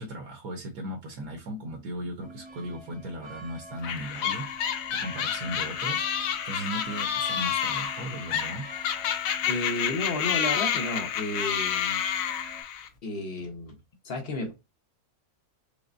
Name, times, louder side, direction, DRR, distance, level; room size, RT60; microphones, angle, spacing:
voice 1, 0.0-6.0 6.5-8.6, right 1 dB, 70° right, 1.2 m, -37 dB
sound 1, 2.2-12.6, right 1 dB, 5° right, 0.8 m, -47 dB
sound 2, 3.8-12.9, left 9 dB, 70° left, 1.0 m, -29 dB
voice 2, 9.5-12.0 13.0-13.8 14.0-14.5, left 2 dB, 45° left, 0.9 m, -32 dB
5.0 x 2.1 x 2.5 m
omnidirectional pair, 1.6 m